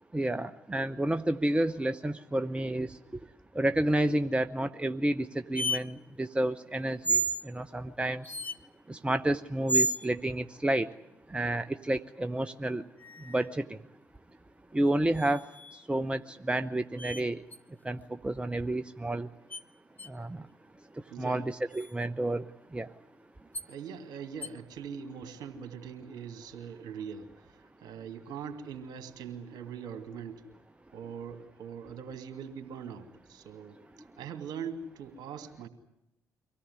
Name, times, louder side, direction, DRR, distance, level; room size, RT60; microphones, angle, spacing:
voice 1, 0.1-3.0 3.5-8.2 8.9-10.9 11.3-12.8 13.3-13.8 14.7-15.5 15.9-17.4 17.8-19.3 20.1-20.5 21.2-22.4 22.7-22.9, right 1 dB, 15° right, 11 dB, 0.8 m, -30 dB
sound 1, 5.5-5.8 7.0-7.4 8.2-8.6 9.7-10.1 13.0-13.5 15.1-15.8 17.0-17.2 17.5-17.6 19.5-19.6 20.0-20.1 21.7-21.9 23.5-23.7 24.4-24.5, right 2 dB, 20° left, 1.1 m, -31 dB
voice 2, 21.1-21.4 23.7-30.4 30.9-35.7, right 7 dB, 60° right, 6 dB, 2.6 m, -42 dB
24.5 x 17.5 x 9.7 m, 0.85 s
figure-of-eight pair, 40°, 8 cm